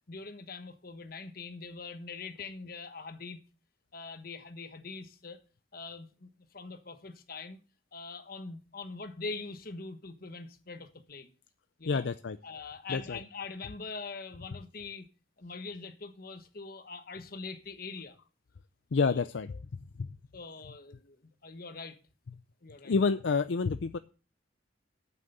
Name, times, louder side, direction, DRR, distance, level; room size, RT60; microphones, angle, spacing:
voice 1, 0.1-3.4 3.9-5.4 5.7-7.6 7.9-11.3 11.8-12.1 12.4-15.1 15.4-18.2 19.0-19.3 20.3-22.0 22.6-22.9, left 4 dB, 50° left, 1.3 m, -43 dB
voice 2, 11.9-12.4 12.9-13.2 18.9-19.5 20.0-20.1 22.8-24.0, left 4 dB, 70° left, 0.5 m, -28 dB
9.0 x 6.6 x 7.9 m
head